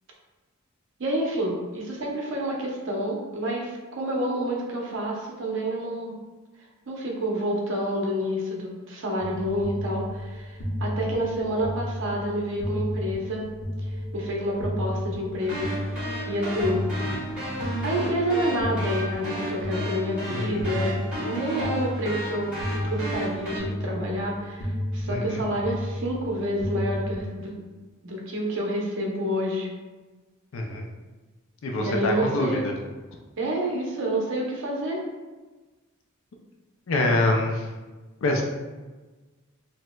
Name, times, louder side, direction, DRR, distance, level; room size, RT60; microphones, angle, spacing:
voice 1, 1.0-6.1 6.9-13.4 13.8-16.9 17.5-22.5 22.8-27.5 28.0-29.7 31.8-32.7 33.4-35.0, equal, 60° right, -2 dB, 0.7 m, -29 dB
sound 1, 9.2-27.2, left 1 dB, 85° left, 0.7 m, -33 dB
sound 2, 15.4-23.6, equal, 5° right, 1.5 m, -33 dB
voice 2, 20.3-20.7 25.1-25.4 30.5-30.8 31.6-32.7 36.9-37.6 38.2-38.4, left 2 dB, 60° left, 1 dB, 0.4 m, -25 dB
4.1 x 2.1 x 2.2 m, 1.3 s
head